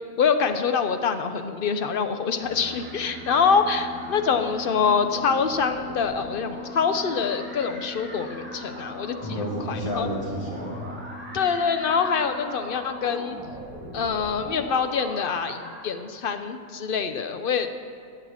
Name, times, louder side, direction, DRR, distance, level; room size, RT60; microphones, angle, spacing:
voice 1, 0.2-10.1 11.3-13.4 13.9-17.7, left 6 dB, 50° left, 8 dB, 0.7 m, -25 dB
sound 1, 2.4-15.9, equal, 10° right, 1.9 m, -39 dB
voice 2, 9.2-10.9, equal, 20° left, -6 dB, 3.3 m, -30 dB
12.5 x 7.9 x 7.3 m, 2.4 s
omnidirectional pair, 1.5 m